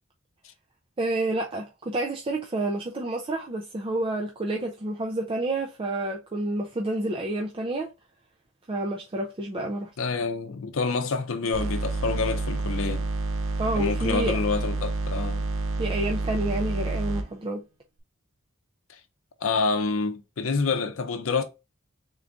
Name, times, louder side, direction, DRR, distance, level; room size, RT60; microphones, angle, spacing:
voice 1, 1.0-7.9 8.7-9.9 13.6-14.4 15.8-17.6, right 2 dB, 25° right, 0.4 m, -29 dB
voice 2, 10.0-13.1 13.8-15.4 18.9-19.0 19.4-21.4, left 4 dB, 70° left, 0.6 m, -27 dB
sound 1, 11.5-17.3, right 2 dB, 70° right, 0.7 m, -29 dB
3.7 x 2.6 x 3.4 m
head